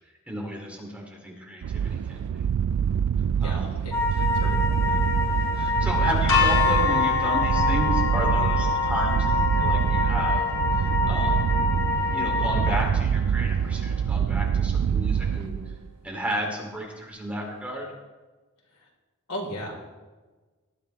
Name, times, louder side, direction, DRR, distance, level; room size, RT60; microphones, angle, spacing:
voice 1, 0.3-2.3 3.4-3.7 5.5-10.4 10.8-11.5 12.1-15.5 16.0-17.9, equal, 5° right, -2 dB, 2.9 m, -33 dB
sound 1, 1.6-15.9, right 7 dB, 85° right, 0.3 m, -25 dB
voice 2, 3.4-3.9 4.3-5.0 18.7-18.9 19.3-19.7, equal, 90° left, -1 dB, 4.1 m, -36 dB
sound 2, 3.9-12.8, left 4 dB, 10° left, 1.5 m, -27 dB
sound 3, 6.3-12.2, left 7 dB, 65° left, 4.9 m, -28 dB
19.5 x 12.5 x 3.4 m, 1.3 s
head